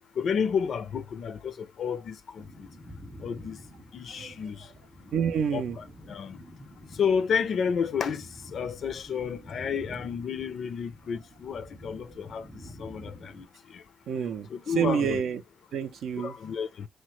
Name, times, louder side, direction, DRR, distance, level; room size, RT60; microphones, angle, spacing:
voice 1, 0.2-2.7 3.2-3.6 3.9-4.7 5.5-6.4 7.0-8.3 8.5-12.5 12.8-13.8 14.5-15.2 16.2-16.9, left 6 dB, 55° left, 0.4 m, -31 dB
sound 1, 2.4-13.4, left 1 dB, 5° right, 0.5 m, -48 dB
voice 2, 5.1-5.8 14.1-15.4 15.7-16.4, right 7 dB, 65° right, 0.4 m, -28 dB
3.0 x 2.2 x 3.0 m
cardioid pair, 100°, 0 cm